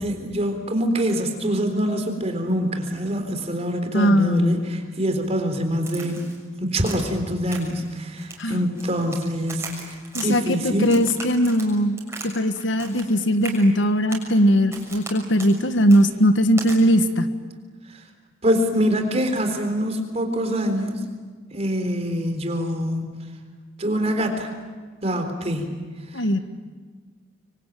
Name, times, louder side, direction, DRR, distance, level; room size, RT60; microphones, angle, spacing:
voice 1, 0.0-6.2 6.6-10.9 17.9-18.0 18.4-21.0 21.5-23.2 23.8-24.5 25.0-25.7 26.1-26.3, equal, 35° right, 5 dB, 3.8 m, -25 dB
voice 2, 3.9-4.5 8.4-8.7 10.1-17.3 26.1-26.4, equal, 75° left, 9 dB, 1.6 m, -20 dB
Crack, 5.9-6.4 6.8-7.2 7.5-7.9 8.2-9.2 9.5-10.3 10.8-12.3 12.6-13.1 13.4-13.6 14.1-14.3 14.7-15.1 15.4-15.5 15.9-16.0 16.6-16.8, right 4 dB, 15° right, 6.6 m, -37 dB
26.5 x 23.5 x 9.1 m, 1.5 s
head